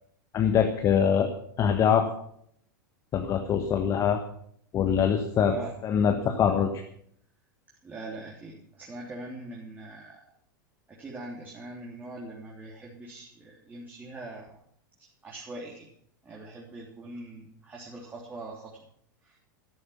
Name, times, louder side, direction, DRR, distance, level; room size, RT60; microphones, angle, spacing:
voice 1, 0.3-1.3 1.6-2.1 3.1-4.2 4.7-5.5 5.8-6.7, left 8 dB, 30° left, 6 dB, 1.5 m, -23 dB
voice 2, 5.4-5.7 7.8-10.2 10.9-14.6 15.0-15.9 16.2-18.8 19.2-19.4, right 2 dB, 15° right, -3 dB, 3.3 m, -42 dB
13.0 x 12.5 x 5.9 m, 0.66 s
figure-of-eight pair, 90°, 11 cm